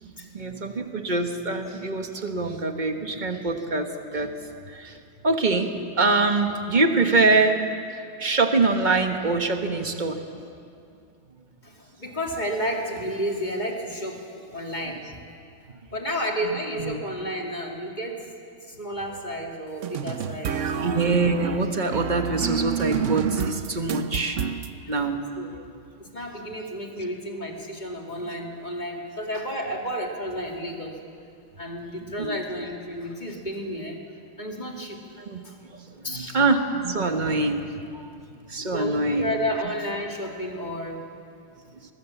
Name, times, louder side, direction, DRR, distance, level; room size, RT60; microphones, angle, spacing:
voice 1, 0.0-4.3 4.7-5.0 5.2-5.7 6.0-7.6 8.2-10.2 16.8-17.0 20.8-24.4 24.9-25.2 32.2-32.4 35.2-35.4 35.7-37.6 37.9-38.2 38.5-39.3, right 3 dB, 25° right, 5 dB, 1.2 m, -24 dB
voice 2, 11.6-15.1 15.9-18.2 18.7-21.1 24.9-25.0 25.4-25.5 26.0-31.0 31.6-34.0 34.4-35.0 35.4-35.5 36.0-36.4 38.7-41.0, equal, 20° left, 1 dB, 2.4 m, -31 dB
sound 1, 19.8-24.7, right 7 dB, 90° right, 0.6 m, -29 dB
23.0 x 20.5 x 7.2 m, 2.4 s
omnidirectional pair, 2.3 m